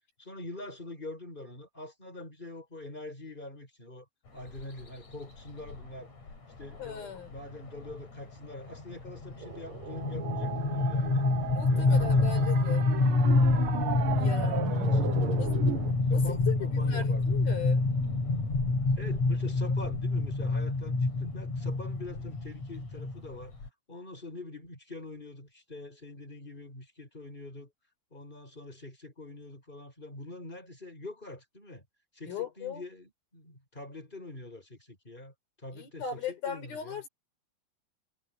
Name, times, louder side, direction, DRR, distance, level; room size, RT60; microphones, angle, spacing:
voice 1, 0.2-4.1 4.3-6.1 6.6-11.3 11.7-12.5 14.1-15.2 16.1-17.2 19.0-23.5 23.9-27.7 28.1-31.8 32.1-35.3 35.6-37.0, left 2 dB, 10° left, 7.3 m, -44 dB
sound 1, 4.6-4.8 5.7-5.8 6.2-6.3 6.6-6.9 7.3-23.7, left 3 dB, 50° left, 6.5 m, -27 dB
voice 2, 6.8-7.3 11.5-12.9 14.2-14.8 15.4-15.5 16.1-17.8 32.3-32.8 35.7-37.1, left 8 dB, 80° left, 7.2 m, -38 dB
sound 2, 9.4-15.9, right 9 dB, 60° right, 1.5 m, -37 dB
omnidirectional pair, 4.2 m